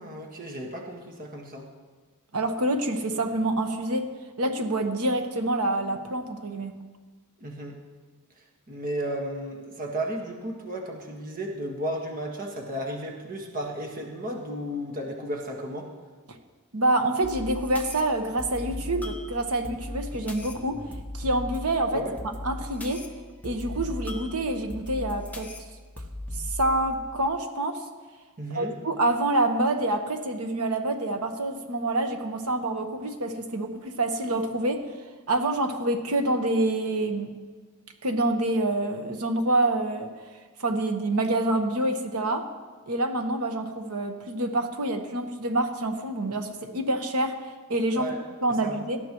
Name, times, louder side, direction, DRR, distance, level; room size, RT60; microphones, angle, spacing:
voice 1, 0.0-1.7 7.4-7.8 8.7-15.9 21.9-22.1 28.4-28.7 47.9-48.2 48.6-48.8, right 1 dB, 40° right, 0 dB, 1.6 m, -34 dB
voice 2, 2.3-4.1 4.4-6.7 16.3-16.4 16.7-20.8 21.1-22.0 22.4-23.0 23.4-25.5 26.4-27.8 28.5-34.8 35.3-37.3 38.0-40.1 40.6-42.4 42.9-47.4 47.7-48.2 48.4-49.0, right 2 dB, 80° right, 6 dB, 1.2 m, -27 dB
sound 1, 17.2-27.2, left 1 dB, 5° left, 1.0 m, -38 dB
17.5 x 12.5 x 3.1 m, 1.4 s
head